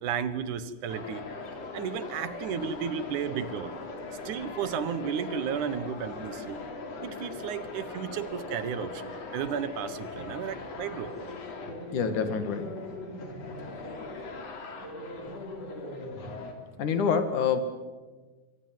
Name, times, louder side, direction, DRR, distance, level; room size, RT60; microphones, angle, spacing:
voice 1, 0.0-1.2 1.7-3.8 4.3-6.6 7.0-11.1, right 7 dB, 80° right, 13 dB, 2.8 m, -33 dB
sound 1, 0.9-16.5, left 3 dB, 60° left, 3.9 m, -40 dB
voice 2, 11.9-12.7 16.8-17.6, left 6 dB, 80° left, 9 dB, 3.4 m, -26 dB
27.5 x 23.0 x 7.7 m, 1.3 s
omnidirectional pair, 3.5 m